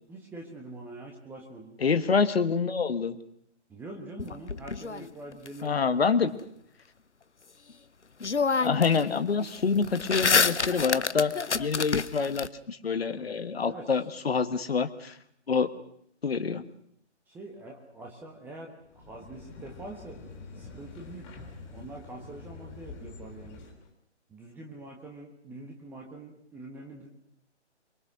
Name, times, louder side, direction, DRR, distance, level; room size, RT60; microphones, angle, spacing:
voice 1, 0.1-1.8 3.7-6.4 13.6-13.9 17.3-20.2 20.5-21.3 21.7-23.6 24.3-27.1, right 2 dB, 5° right, 0 dB, 1.5 m, -44 dB
voice 2, 1.8-3.2 5.6-6.3 8.6-11.3 11.6-15.1 15.5-15.7 16.2-16.6, left 5 dB, 60° left, 10 dB, 1.6 m, -26 dB
sound 1, 4.2-5.5 7.7-7.8 8.2-9.0 9.3-12.5, left 5 dB, 75° left, 1.0 m, -27 dB
sound 2, 18.8-23.9, left 4 dB, 15° left, 3.1 m, -46 dB
24.0 x 23.5 x 6.3 m, 0.69 s
figure-of-eight pair, 140°, 35 cm